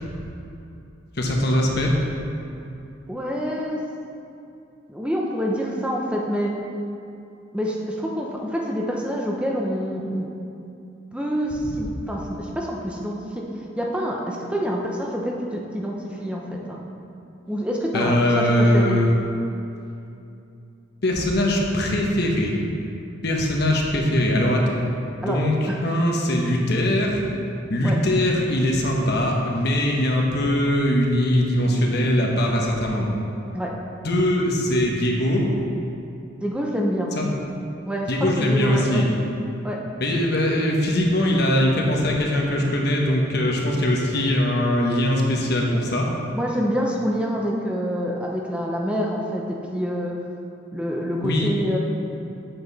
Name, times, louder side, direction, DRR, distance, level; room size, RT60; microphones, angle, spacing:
voice 1, 1.2-1.9 17.9-19.1 21.0-22.5 23.2-24.7 25.3-27.2 27.7-33.1 34.0-35.5 37.1-37.3 38.1-39.1 40.0-46.1 51.2-51.5, left 1 dB, 55° left, 0 dB, 1.2 m, -21 dB
voice 2, 3.1-3.8 4.9-6.6 7.5-10.2 11.1-13.5 13.8-16.8 17.5-19.0 25.2-25.4 25.7-25.8 27.8-28.0 33.5-33.7 36.4-37.1 37.8-39.0 39.6-39.8 46.3-50.2 50.7-51.8, equal, 5° right, -2 dB, 0.7 m, -26 dB
8.0 x 7.9 x 4.1 m, 2.7 s
head